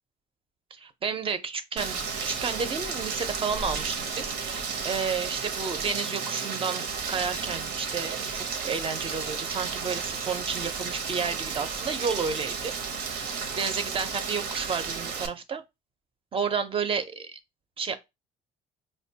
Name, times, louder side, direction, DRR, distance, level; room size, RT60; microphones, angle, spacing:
voice 1, 0.7-15.6 16.3-17.4 17.8-18.0, right 5 dB, 30° right, 0.5 m, -32 dB
Rain, 1.8-15.3, right 5 dB, 80° right, 0.8 m, -33 dB
5.0 x 2.2 x 2.7 m
cardioid pair, 110°, 17 cm